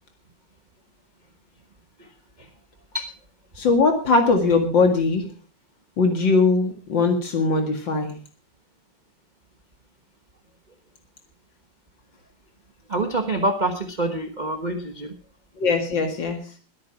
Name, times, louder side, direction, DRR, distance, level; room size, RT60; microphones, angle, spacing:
voice 1, 3.6-5.3 6.0-8.2 15.6-16.4, left 3 dB, 75° left, 5 dB, 2.6 m, -20 dB
voice 2, 12.9-15.1, right 1 dB, 30° right, 5 dB, 1.2 m, -26 dB
22.0 x 8.7 x 4.7 m, 0.39 s
omnidirectional pair, 2.0 m